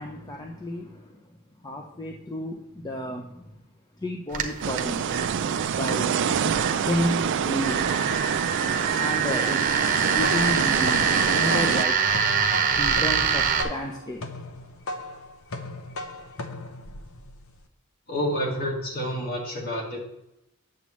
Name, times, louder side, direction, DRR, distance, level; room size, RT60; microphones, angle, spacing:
voice 1, 0.0-3.6 4.0-5.1 5.7-7.9 8.9-12.3 12.7-14.4 14.9-15.0, equal, 20° left, 1 dB, 0.6 m, -32 dB
sound 1, 4.3-13.6, right 6 dB, 40° right, 0.8 m, -25 dB
sound 2, 4.6-11.9, right 7 dB, 55° right, 0.3 m, -26 dB
sound 3, 10.1-17.6, left 2 dB, 70° left, 0.8 m, -37 dB
voice 2, 18.1-20.0, equal, 45° left, -1 dB, 2.0 m, -29 dB
8.7 x 7.1 x 3.1 m, 0.86 s
head